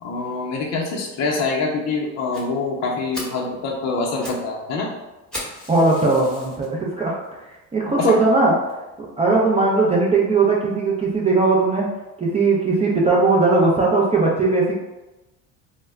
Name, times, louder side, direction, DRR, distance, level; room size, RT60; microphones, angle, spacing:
voice 1, 0.0-4.9 8.0-8.1, left 3 dB, 45° left, -1 dB, 0.6 m, -25 dB
Fire, 2.3-2.5 2.9-3.0 3.1-3.4 4.0-4.5 4.7-4.8 5.3-6.7 7.2-7.3 7.9-8.0 8.3-8.4 8.7-8.8, left 1 dB, ahead, 1.0 m, -35 dB
voice 2, 5.7-7.2 7.7-8.6 9.0-11.9 12.2-14.7, right 3 dB, 15° right, -4 dB, 0.5 m, -18 dB
2.1 x 2.1 x 3.4 m, 1.0 s
supercardioid pair, 85°, 39 cm